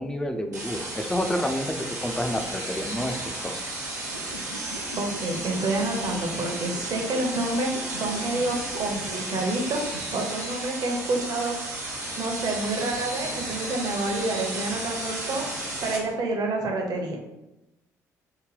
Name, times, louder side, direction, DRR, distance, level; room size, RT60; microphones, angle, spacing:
voice 1, 0.0-3.6, left 1 dB, 10° left, 5 dB, 0.4 m, -29 dB
sound 1, 0.5-16.0, right 2 dB, 85° right, 0.6 m, -33 dB
sound 2, 4.1-10.0, left 1 dB, 90° left, 0.4 m, -41 dB
voice 2, 5.0-11.6 12.2-17.2, right 2 dB, 50° right, 2 dB, 0.8 m, -28 dB
3.7 x 2.2 x 3.3 m, 0.95 s
figure-of-eight pair, 45°, 9 cm